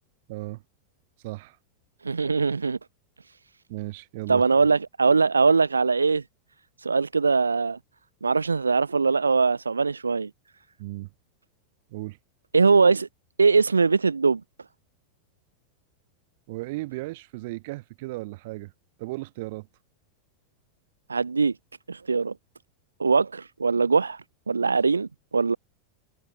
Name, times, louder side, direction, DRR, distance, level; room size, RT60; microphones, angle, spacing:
voice 1, 0.3-0.6 1.2-1.6 3.7-4.4 10.8-11.1 11.9-12.2 16.5-18.7 19.0-19.7, right 21 dB, 50° right, 3.0 m, -35 dB
voice 2, 2.0-2.8 4.3-6.2 6.8-7.8 8.2-10.3 12.5-13.1 13.4-14.4 21.1-21.5 21.9-22.3 23.0-25.6, right 4 dB, 75° right, 1.6 m, -21 dB
open air
figure-of-eight pair, 90°, 0 cm